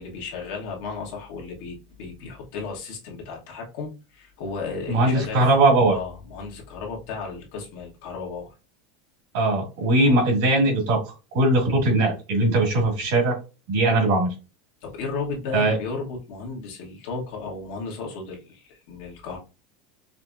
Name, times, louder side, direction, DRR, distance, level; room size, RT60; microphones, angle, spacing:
voice 1, 0.0-5.5 5.9-8.5 10.1-10.2 14.8-19.4, left 4 dB, 60° left, 0 dB, 1.1 m, -34 dB
voice 2, 4.9-5.9 9.3-13.4 13.7-14.3 15.5-15.8, right 2 dB, 65° right, -1 dB, 1.8 m, -20 dB
4.9 x 2.0 x 2.4 m, 0.30 s
supercardioid pair, 170°, 0 cm